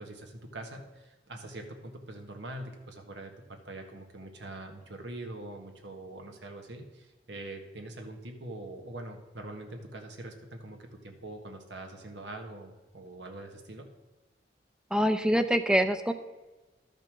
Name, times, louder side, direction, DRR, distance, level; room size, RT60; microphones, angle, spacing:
voice 1, 0.0-13.9, right 2 dB, 85° right, 4 dB, 1.5 m, -43 dB
voice 2, 14.9-16.1, equal, 5° right, 9 dB, 0.5 m, -25 dB
12.0 x 5.4 x 6.2 m, 1.2 s
head